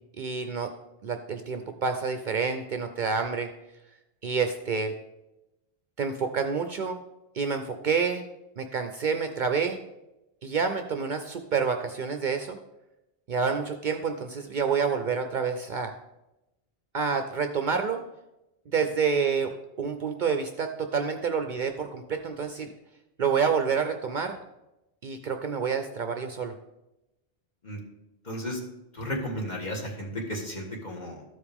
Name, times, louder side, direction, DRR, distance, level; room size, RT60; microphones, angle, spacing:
voice 1, 0.2-0.7 1.0-3.5 4.2-4.9 6.0-7.0 7.3-8.3 8.6-9.8 10.4-12.6 13.3-15.9 16.9-18.0 18.7-19.5 19.8-22.7 23.2-24.4 25.0-26.5, right 5 dB, 55° right, 6 dB, 0.6 m, -28 dB
voice 2, 28.3-28.6 28.9-31.2, equal, 45° left, -1 dB, 1.7 m, -33 dB
13.5 x 4.9 x 3.5 m, 0.95 s
omnidirectional pair, 1.1 m